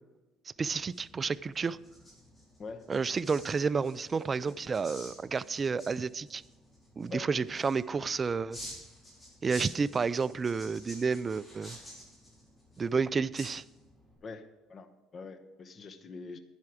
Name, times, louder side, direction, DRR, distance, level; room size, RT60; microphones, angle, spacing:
sound 1, 0.5-14.1, equal, 15° left, 4.8 m, -51 dB
voice 1, 0.6-1.8 2.9-6.4 7.0-8.6 9.4-11.8 12.8-13.6, right 5 dB, 25° right, 0.3 m, -30 dB
voice 2, 2.6-2.9 4.4-4.5 7.1-7.3 14.2-14.4 14.7-14.9 15.1-16.4, left 4 dB, 35° left, 1.0 m, -43 dB
11.0 x 10.5 x 4.9 m
cardioid pair, 115°, 0 cm